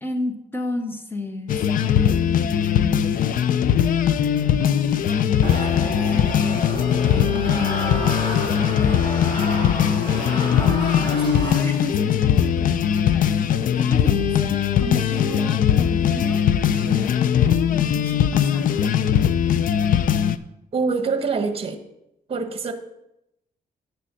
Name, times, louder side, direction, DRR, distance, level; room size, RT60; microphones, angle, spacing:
voice 1, 0.0-3.0 5.1-7.9 10.3-14.3 14.8-16.4 16.7-18.8, left 1 dB, 15° left, 6 dB, 1.0 m, -32 dB
sound 1, 1.5-20.4, left 9 dB, 55° left, 0.5 m, -20 dB
sound 2, 5.4-12.0, equal, 30° left, 1.9 m, -30 dB
voice 2, 20.7-21.8 22.3-22.7, right 4 dB, 35° right, 8 dB, 1.1 m, -24 dB
6.6 x 6.4 x 7.4 m, 0.86 s
cardioid pair, 145°, 17 cm